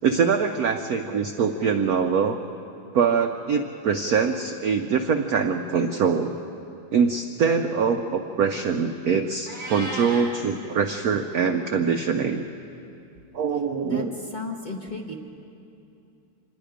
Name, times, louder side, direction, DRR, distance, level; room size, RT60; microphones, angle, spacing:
voice 1, 0.0-2.4 2.9-6.4 6.9-12.5 13.3-14.1, right 6 dB, 70° right, 6 dB, 0.9 m, -23 dB
Meow, 9.5-10.3, right 1 dB, 35° right, 3.9 m, -34 dB
voice 2, 13.8-15.1, left 2 dB, 25° left, 0 dB, 1.1 m, -34 dB
26.0 x 20.0 x 5.1 m, 2.7 s
omnidirectional pair, 2.3 m